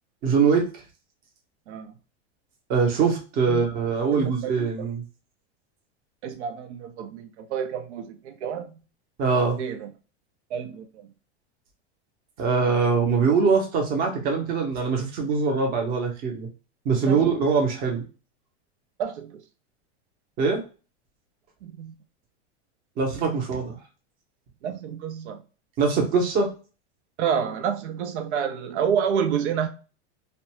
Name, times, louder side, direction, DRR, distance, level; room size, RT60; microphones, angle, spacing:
voice 1, 0.2-0.7 2.7-5.0 9.2-9.6 12.4-16.5 16.8-18.0 20.4-20.6 23.0-23.8 25.8-26.5, right 5 dB, 25° right, 0.7 m, -23 dB
voice 2, 4.1-4.9 6.2-8.8 9.6-9.9 10.5-11.1 12.6-12.8 17.1-17.3 19.0-19.4 21.6-21.9 24.6-25.4 27.2-29.7, right 7 dB, 85° right, 0.6 m, -29 dB
2.5 x 2.2 x 2.9 m
supercardioid pair, 160°, 33 cm